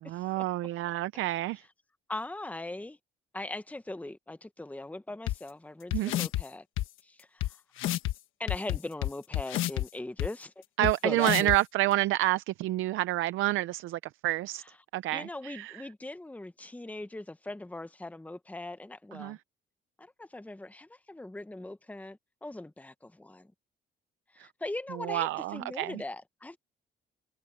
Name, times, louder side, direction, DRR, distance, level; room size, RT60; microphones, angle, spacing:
voice 1, 0.0-1.6 5.9-6.1 10.8-14.6 14.9-15.8 19.1-19.4 24.4-24.5 25.0-26.0, right 16 dB, 90° right, 0.6 m, -29 dB
voice 2, 2.1-3.0 3.3-6.6 7.0-7.6 8.4-10.5 11.0-11.5 15.1-19.4 20.0-23.5 24.3-26.6, left 2 dB, 5° left, 1.1 m, -40 dB
sound 1, 5.3-5.4 5.9-6.4 6.8-6.9 7.4-7.5 7.8-8.1 8.5-9.9 10.2-10.3 10.8-10.9 11.2-11.6, left 14 dB, 90° left, 1.3 m, -29 dB
cardioid pair, 90°, 20 cm